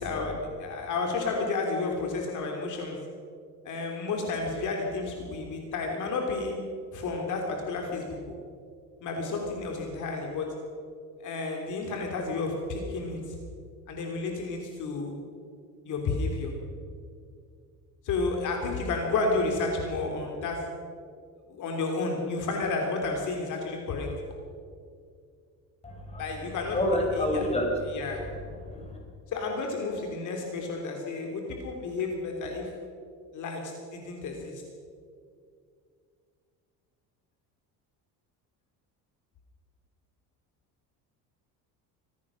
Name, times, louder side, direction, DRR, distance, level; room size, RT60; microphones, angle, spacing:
voice 1, 0.0-3.0 3.6-6.6 6.9-8.4 9.0-10.5 11.2-13.4 13.9-15.1 15.8-16.5 18.0-20.6 21.5-24.1 26.2-26.8 27.1-27.4 27.9-28.2 29.3-32.7 33.3-34.6, left 3 dB, 55° left, 1 dB, 3.4 m, -31 dB
voice 2, 25.8-26.5 26.7-27.7 28.6-29.0, left 1 dB, 15° left, 1 dB, 4.9 m, -28 dB
24.5 x 17.0 x 6.4 m, 2.3 s
cardioid pair, 150°, 37 cm